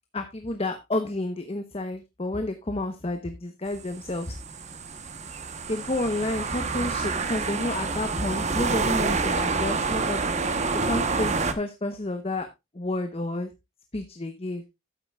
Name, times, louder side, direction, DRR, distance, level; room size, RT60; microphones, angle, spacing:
voice 1, 0.1-4.3 5.7-10.3 10.8-12.5 12.7-13.5 13.9-14.6, left 2 dB, 30° left, 7 dB, 0.9 m, -30 dB
sound 1, 3.7-11.5, right 4 dB, 35° right, 1.0 m, -28 dB
12.5 x 9.0 x 2.3 m, 0.23 s
head